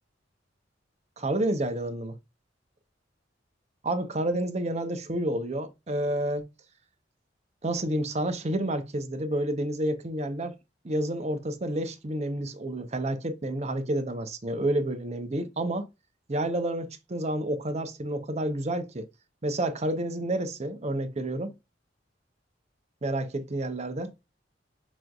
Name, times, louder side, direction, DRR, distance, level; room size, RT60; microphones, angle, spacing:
voice 1, 1.2-2.2 3.8-6.4 7.6-10.6 10.8-15.9 16.3-19.1 19.4-21.5 23.0-24.1, right 1 dB, 35° right, 0.7 m, -29 dB
5.2 x 3.1 x 2.3 m
head